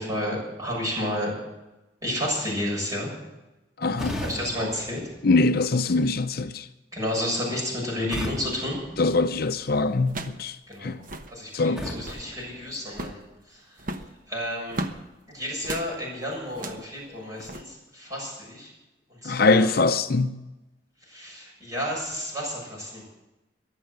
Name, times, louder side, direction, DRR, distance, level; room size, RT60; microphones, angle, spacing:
voice 1, 0.0-1.4 2.0-3.1 4.2-5.0 6.9-8.8 10.7-11.0 11.3-14.9 15.3-18.7 19.1-19.7 21.0-23.1, left 1 dB, 20° right, 7.3 m, -31 dB
voice 2, 3.8-4.2 5.2-6.7 9.0-10.6 10.8-11.0 11.5-11.8 19.2-20.3, left 3 dB, 55° left, 0.6 m, -22 dB
sound 1, 4.0-5.9 8.1-9.8 11.8-13.4, equal, 5° right, 2.0 m, -38 dB
sound 2, 9.1-9.3 10.0-10.5 10.7-10.8 11.0-11.3 11.8-12.3 12.9-13.3 13.8-15.0 15.6-15.9 16.5-16.9 17.4-17.6, right 1 dB, 50° right, 1.1 m, -35 dB
22.0 x 7.5 x 8.0 m
head